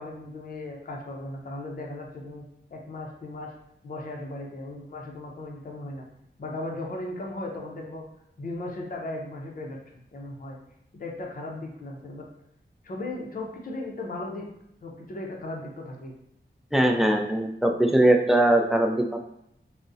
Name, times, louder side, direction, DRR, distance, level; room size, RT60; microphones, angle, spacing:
voice 1, 0.0-2.5 2.7-3.5 3.8-6.1 6.4-8.0 8.4-9.8 10.1-10.6 10.9-12.3 12.8-14.5 14.8-16.1, left 2 dB, 45° left, 0 dB, 0.5 m, -36 dB
voice 2, 16.7-19.2, right 1 dB, ahead, 2 dB, 0.3 m, -21 dB
3.5 x 2.0 x 2.6 m, 0.76 s
wide cardioid pair, 90°, 19 cm